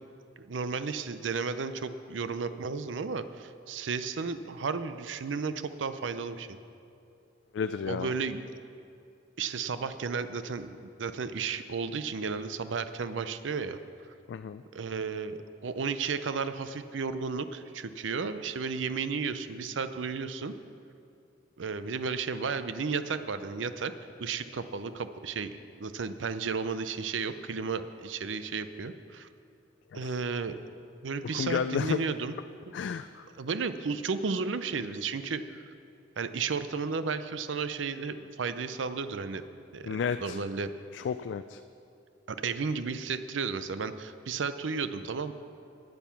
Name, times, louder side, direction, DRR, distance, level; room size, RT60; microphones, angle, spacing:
voice 1, 0.4-6.6 7.9-8.5 9.4-13.8 14.7-20.5 21.6-23.9 24.2-25.5 25.8-29.3 29.9-30.6 31.0-32.4 32.7-32.8 33.4-35.6 36.2-39.4 39.7-40.7 42.3-45.3, right 5 dB, 90° right, 11 dB, 0.6 m, -33 dB
voice 2, 7.5-8.1 14.3-14.6 29.9-30.1 31.3-32.0 32.7-33.2 39.9-40.4 40.9-41.6, left 6 dB, 70° left, 11 dB, 0.3 m, -32 dB
10.0 x 9.4 x 7.1 m, 2.5 s
head